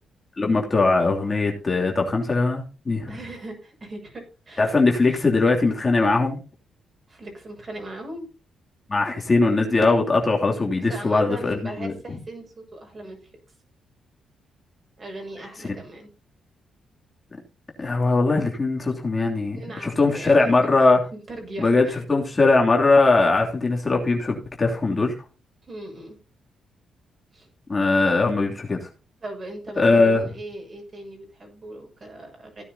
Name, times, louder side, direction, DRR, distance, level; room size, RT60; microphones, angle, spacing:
voice 1, 0.4-3.1 4.6-6.4 8.9-11.9 17.8-21.0 21.6-25.1 27.7-28.9 29.8-30.3, left 3 dB, 25° left, 0 dB, 3.0 m, -20 dB
voice 2, 3.1-4.8 7.1-8.3 10.7-13.2 15.0-16.1 19.5-19.9 20.1-20.5 21.1-22.0 25.6-26.2 27.3-27.5 29.2-32.6, right 1 dB, 40° right, 2 dB, 6.7 m, -39 dB
16.0 x 9.8 x 2.9 m, 0.33 s
cardioid pair, 100°, 0 cm